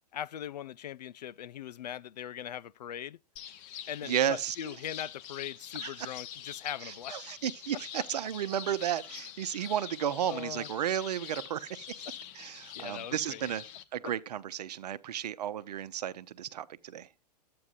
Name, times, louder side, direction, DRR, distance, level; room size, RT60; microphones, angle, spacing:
voice 1, 0.1-3.2 3.9-7.2 10.2-10.7 12.1-12.2 12.7-13.5, left 10 dB, 75° left, 0.5 m, -40 dB
sound 1, 3.4-13.8, left 10 dB, 40° left, 1.0 m, -45 dB
voice 2, 4.0-4.6 5.8-6.1 6.8-11.9 12.3-13.6 13.9-17.1, right 10 dB, 70° right, 0.8 m, -33 dB
12.0 x 8.7 x 2.5 m
hypercardioid pair, 105°, 21 cm